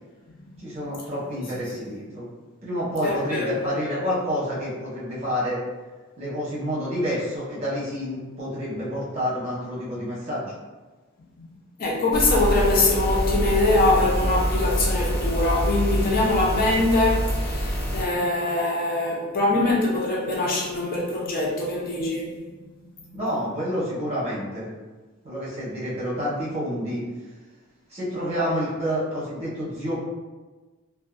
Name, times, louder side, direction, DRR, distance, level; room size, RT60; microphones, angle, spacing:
voice 1, 0.6-2.3 2.6-5.6 6.2-10.5 23.1-24.7 25.2-27.0 27.9-30.0, equal, 30° right, -8 dB, 0.9 m, -28 dB
voice 2, 3.0-4.0 11.8-22.3 23.0-23.1, left 2 dB, 40° left, -3 dB, 0.4 m, -23 dB
sound 1, 12.1-18.0, equal, 75° left, 1.1 m, -25 dB
2.5 x 2.2 x 2.3 m, 1.3 s
head